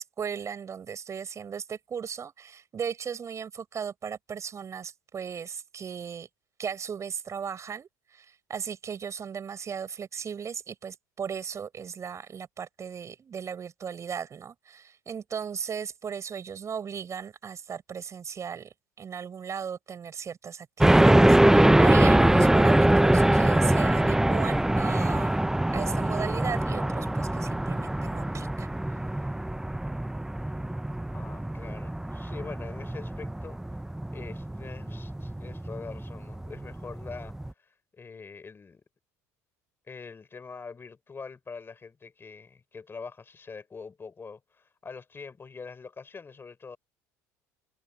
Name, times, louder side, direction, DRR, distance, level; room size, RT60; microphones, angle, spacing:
voice 1, 0.0-6.3 6.6-25.4 25.7-28.7, right 7 dB, 35° right, 6.7 m, -37 dB
sound 1, 20.8-37.5, right 1 dB, 5° right, 0.8 m, -23 dB
voice 2, 31.1-33.8 34.1-37.3 37.9-38.8 39.9-46.8, left 5 dB, 25° left, 6.2 m, -44 dB
hypercardioid pair, 75°, 8 cm